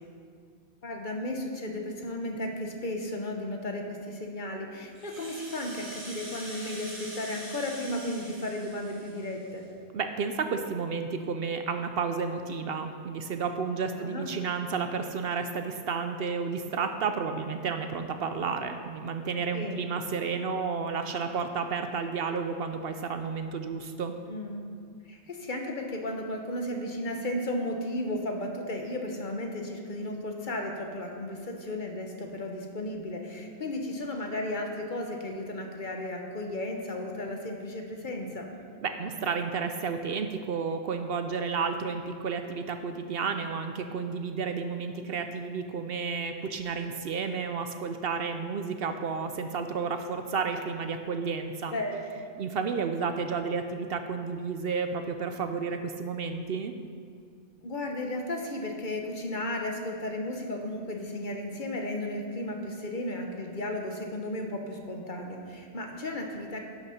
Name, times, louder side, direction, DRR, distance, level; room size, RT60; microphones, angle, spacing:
voice 1, 0.8-9.6 14.0-14.3 19.5-19.8 24.3-24.7 25.0-38.5 51.7-52.2 57.6-66.6, left 1 dB, 45° left, 2 dB, 1.1 m, -34 dB
Rattle (instrument), 4.9-9.6, right 1 dB, 80° right, 3.6 m, -44 dB
voice 2, 9.9-24.1 38.8-51.7 52.4-56.7, right 5 dB, 65° right, 7 dB, 0.7 m, -31 dB
11.0 x 6.4 x 5.8 m, 2.1 s
omnidirectional pair, 1.2 m